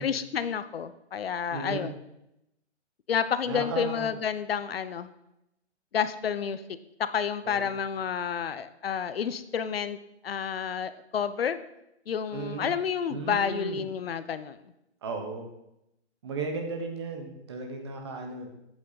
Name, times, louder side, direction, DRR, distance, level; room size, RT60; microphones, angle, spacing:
voice 1, 0.0-1.9 3.1-5.1 5.9-6.6 7.0-10.0 10.2-11.6 12.1-14.6, left 7 dB, 60° left, 12 dB, 0.6 m, -30 dB
voice 2, 1.5-1.9 3.5-4.1 7.4-7.7 12.3-12.7 13.1-13.8 15.0-15.5 16.2-18.5, right 4 dB, 25° right, 4 dB, 0.9 m, -35 dB
8.4 x 6.2 x 3.9 m, 0.85 s
hypercardioid pair, 170°, 35 cm